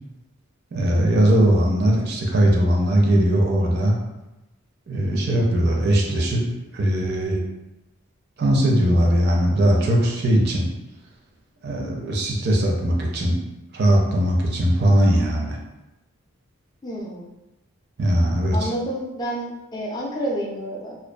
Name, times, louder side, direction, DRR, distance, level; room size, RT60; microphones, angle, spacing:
voice 1, 0.7-4.0 4.9-6.4 6.7-7.4 8.4-10.7 11.6-13.4 13.7-15.6 18.0-18.7, right 1 dB, 45° right, -1 dB, 0.4 m, -19 dB
voice 2, 16.8-17.2 18.5-21.0, equal, 20° left, -2 dB, 0.3 m, -29 dB
2.5 x 2.2 x 2.2 m, 0.98 s
head